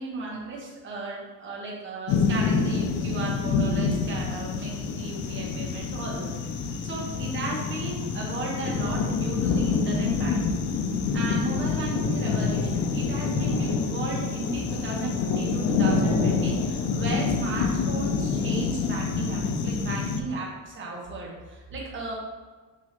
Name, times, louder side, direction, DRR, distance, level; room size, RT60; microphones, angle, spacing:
voice 1, 0.0-10.6 11.1-22.1, right 2 dB, 35° right, -3 dB, 1.1 m, -35 dB
sound 1, 2.1-20.2, left 4 dB, 60° left, 0.5 m, -27 dB
6.2 x 2.8 x 2.9 m, 1.4 s
cardioid pair, 145°, 34 cm